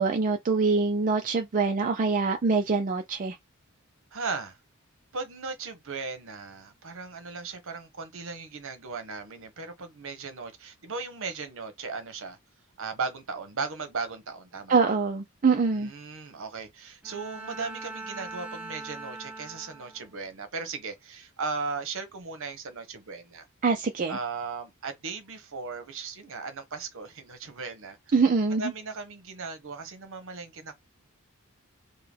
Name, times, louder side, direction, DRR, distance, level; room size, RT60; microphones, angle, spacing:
voice 1, 0.0-3.4 14.7-15.9 23.6-24.2 28.1-28.7, right 4 dB, 40° right, 0.4 m, -24 dB
voice 2, 4.1-4.6 5.1-12.4 12.8-14.8 15.7-23.4 24.1-28.0 28.6-30.7, right 4 dB, 65° right, 1.0 m, -37 dB
Bowed string instrument, 17.0-20.2, right 3 dB, 5° right, 0.9 m, -41 dB
3.7 x 2.2 x 3.5 m
head